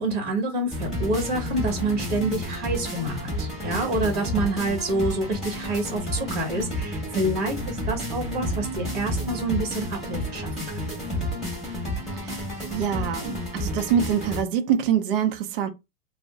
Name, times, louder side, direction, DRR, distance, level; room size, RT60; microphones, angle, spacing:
voice 1, 0.0-11.0, right 2 dB, 20° right, 1.1 m, -28 dB
sound 1, 0.7-14.4, equal, ahead, 0.8 m, -31 dB
voice 2, 12.7-15.7, right 8 dB, 40° right, 0.4 m, -25 dB
2.5 x 2.1 x 3.5 m
supercardioid pair, 165°, 45 cm